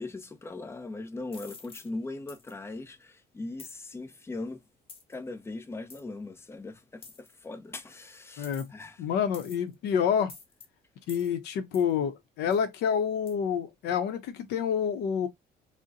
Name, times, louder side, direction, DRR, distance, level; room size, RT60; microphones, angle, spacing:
voice 1, 0.0-4.6 5.1-9.1, left 2 dB, 15° left, 0.5 m, -40 dB
sound 1, 1.3-1.9 2.3-2.5 3.6-3.8 4.9-5.1 5.9-6.0 7.0-7.3 8.4-8.8 9.3-9.7 10.3-10.7 11.1-11.3 11.7-11.9 12.5-12.6 13.3-13.4, left 4 dB, 35° left, 0.9 m, -48 dB
voice 2, 9.0-10.3 11.1-15.3, left 7 dB, 75° left, 0.6 m, -28 dB
3.9 x 2.1 x 2.4 m
cardioid pair, 110°, 17 cm